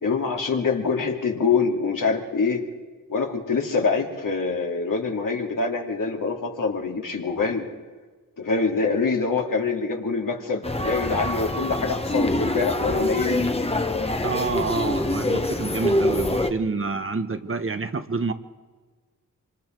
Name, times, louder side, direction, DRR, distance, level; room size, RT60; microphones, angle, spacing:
voice 1, 0.0-2.6 3.1-7.7 8.4-13.4, left 4 dB, 75° left, 1 dB, 2.7 m, -25 dB
sound 1, 10.6-16.5, left 1 dB, 20° left, 1.2 m, -25 dB
voice 2, 14.2-18.3, right 4 dB, 40° right, 9 dB, 1.2 m, -28 dB
25.5 x 25.0 x 4.6 m, 1.4 s
wide cardioid pair, 75°, 33 cm